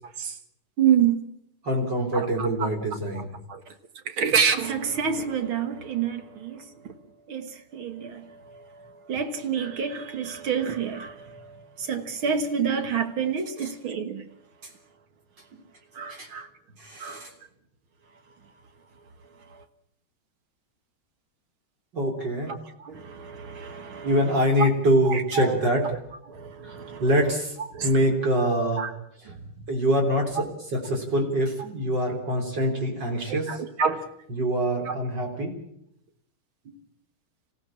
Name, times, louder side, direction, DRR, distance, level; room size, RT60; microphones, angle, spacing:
voice 1, 0.8-1.2 2.1-2.7 3.5-3.6 4.1-6.9 7.3-14.3 15.9-16.5 17.0-17.3 19.5-19.6 22.8-24.2 24.6-24.7 25.1-25.6 26.3-27.0 27.7-27.9 28.8-28.9 29.3-29.4 33.3-34.0 34.9-35.0, right 7 dB, 70° right, 2.2 m, -28 dB
voice 2, 1.6-3.3 13.6-13.7 16.1-16.3 16.8-17.3 21.9-22.5 24.0-25.9 26.6-27.6 27.8-28.8 29.7-30.5 30.7-33.5 34.3-35.6, equal, 50° right, 4.3 m, -24 dB
26.5 x 16.0 x 7.4 m
omnidirectional pair, 2.4 m